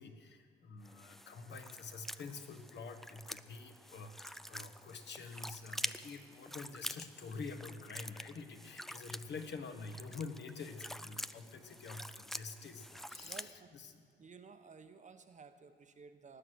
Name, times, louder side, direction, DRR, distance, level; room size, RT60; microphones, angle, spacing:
voice 1, 0.0-14.0, left 4 dB, 60° left, 6 dB, 1.4 m, -47 dB
sound 1, 0.8-13.5, equal, ahead, 0.3 m, -47 dB
voice 2, 13.1-13.7 14.2-16.4, right 5 dB, 40° right, 8 dB, 1.0 m, -55 dB
19.0 x 7.9 x 6.3 m, 2.2 s
cardioid pair, 90°, 20 cm